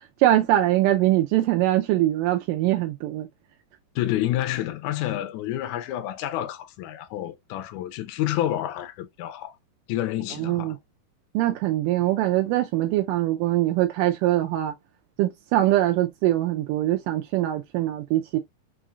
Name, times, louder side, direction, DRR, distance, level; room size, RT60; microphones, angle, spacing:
voice 1, 0.2-3.3 10.4-10.8 11.3-14.7 15.2-18.4, right 14 dB, 80° right, 2.0 m, -22 dB
voice 2, 4.0-9.6 9.9-10.8, left 13 dB, 80° left, 1.7 m, -29 dB
5.6 x 2.5 x 2.4 m
omnidirectional pair, 3.9 m